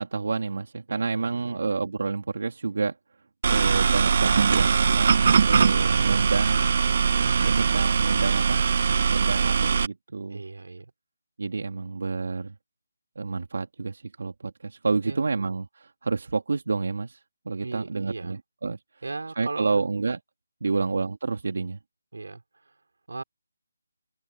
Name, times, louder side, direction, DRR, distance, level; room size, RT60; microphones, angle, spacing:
voice 1, 0.0-3.0 3.5-6.7 7.4-8.7 9.1-10.4 11.4-12.5 13.2-18.8 19.4-20.2 20.6-21.8, right 4 dB, 60° right, 2.5 m, -29 dB
voice 2, 0.9-1.6 10.3-10.9 15.0-15.2 17.6-18.4 19.0-19.9 20.6-20.9 22.1-22.4 23.1-23.2, right 3 dB, 80° right, 4.7 m, -37 dB
sound 1, 3.4-9.9, right 6 dB, 40° right, 1.0 m, -21 dB
open air
figure-of-eight pair, 170°, 0 cm